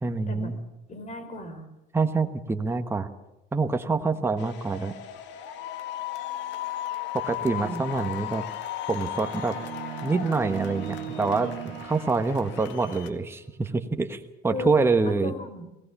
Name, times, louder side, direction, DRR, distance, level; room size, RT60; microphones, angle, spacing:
voice 1, 0.0-0.6 1.9-3.1 3.5-4.9 7.1-8.4 8.9-9.6 10.0-15.3, right 4 dB, 10° right, 6 dB, 1.3 m, -26 dB
voice 2, 0.9-1.7 7.4-7.8 14.5-14.7 15.0-15.6, left 2 dB, 35° left, 9 dB, 4.7 m, -36 dB
sound 1, 4.4-13.1, left 11 dB, 65° left, 1.9 m, -36 dB
sound 2, 9.0-13.0, right 13 dB, 80° right, 1.6 m, -38 dB
21.0 x 17.5 x 7.2 m, 0.93 s
supercardioid pair, 110°, 20 cm